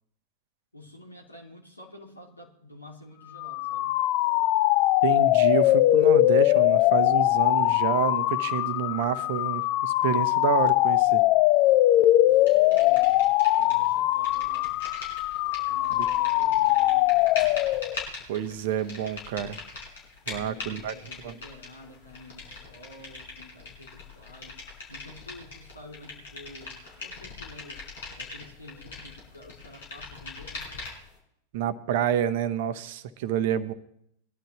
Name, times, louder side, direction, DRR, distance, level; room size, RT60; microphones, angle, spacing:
voice 1, 0.7-4.0 12.2-13.2 13.5-14.8 15.4-17.6 20.2-24.6 24.9-27.8 28.2-30.8, left 1 dB, 80° left, -1 dB, 2.7 m, -49 dB
sound 1, 3.3-18.0, left 16 dB, 40° left, 0.4 m, -22 dB
voice 2, 5.0-11.2 15.9-16.1 18.3-19.6 20.3-20.9 21.2-21.3 31.5-33.7, right 9 dB, 50° right, 13 dB, 0.8 m, -28 dB
sound 2, 12.5-13.9 14.1-31.1, left 3 dB, 60° left, 5.3 m, -41 dB
22.0 x 11.5 x 3.0 m, 0.72 s
figure-of-eight pair, 90°, 0 cm